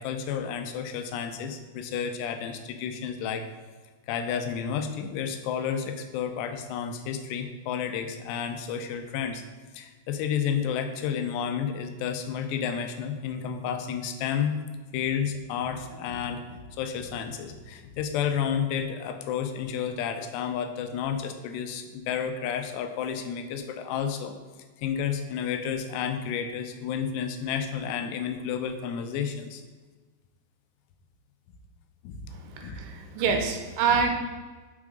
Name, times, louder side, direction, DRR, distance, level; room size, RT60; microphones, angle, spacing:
voice 1, 0.0-3.5 4.1-9.4 9.7-14.6 14.9-24.4 24.8-29.6 32.0-32.3 32.6-32.8 33.2-33.4 33.9-34.0, left 7 dB, 85° left, 6 dB, 2.7 m, -31 dB
voice 2, 32.3-34.1, right 6 dB, 85° right, 4 dB, 2.9 m, -26 dB
6.1 x 4.7 x 4.9 m, 1.3 s
omnidirectional pair, 4.9 m